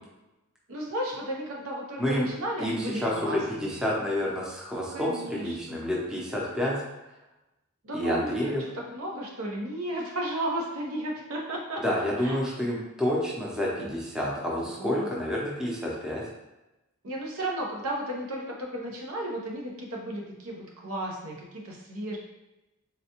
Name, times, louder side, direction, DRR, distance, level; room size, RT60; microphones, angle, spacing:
voice 1, 0.7-3.8 4.7-5.8 7.8-12.4 13.8-13.9 14.8-15.1 17.0-22.2, right 1 dB, 90° right, -1 dB, 0.7 m, -34 dB
voice 2, 2.6-6.8 7.9-8.6 11.8-16.2, left 1 dB, 5° right, -5 dB, 0.5 m, -29 dB
4.0 x 2.2 x 2.9 m, 0.98 s
head